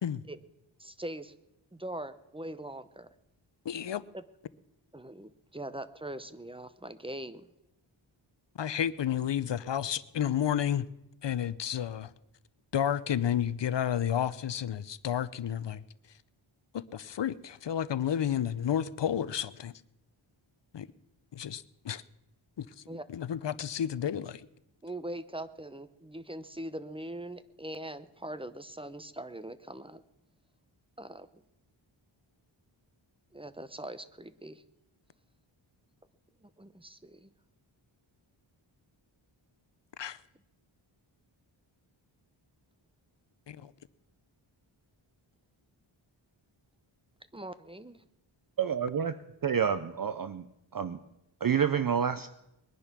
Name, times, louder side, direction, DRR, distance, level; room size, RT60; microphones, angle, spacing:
voice 1, 0.8-1.3 1.7-3.1 4.1-4.2 4.9-7.5 22.9-23.0 24.8-30.0 31.0-31.4 33.3-34.6 36.4-37.3 47.3-48.0, right 1 dB, 10° right, 0.7 m, -42 dB
voice 2, 3.6-4.0 8.5-10.9 11.2-12.1 12.7-15.8 16.7-19.7 20.7-20.9 21.3-22.0 22.6-24.5 40.0-40.2 43.5-43.7, left 9 dB, 60° left, 0.7 m, -31 dB
voice 3, 48.6-49.1 49.4-50.4 50.7-51.0 51.4-52.3, right 7 dB, 45° right, 0.6 m, -28 dB
21.0 x 10.0 x 6.1 m
wide cardioid pair, 90°, 49 cm